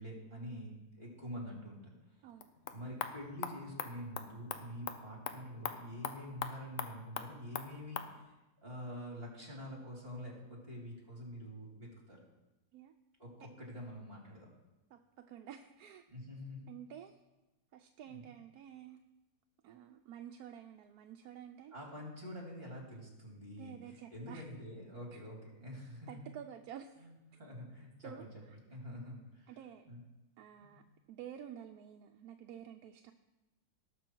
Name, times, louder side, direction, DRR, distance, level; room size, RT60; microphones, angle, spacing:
voice 1, 0.0-2.2 2.7-8.4 8.6-12.2 13.2-14.5 16.1-16.7 18.1-18.3 21.7-26.2 27.0-28.3 28.7-29.5 29.8-30.0 30.6-30.7, equal, 40° right, -1 dB, 3.1 m, -47 dB
sound 1, 2.3-8.1, left 7 dB, 65° left, 1.1 m, -43 dB
voice 2, 14.9-16.1 16.7-17.1 17.7-19.0 19.6-21.7 23.6-24.4 26.1-27.1 27.3-27.4 28.0-28.3 29.5-29.8 30.4-30.8 31.1-33.1, right 9 dB, 80° right, 5 dB, 1.1 m, -50 dB
18.0 x 6.3 x 4.5 m, 1.0 s
omnidirectional pair, 1.6 m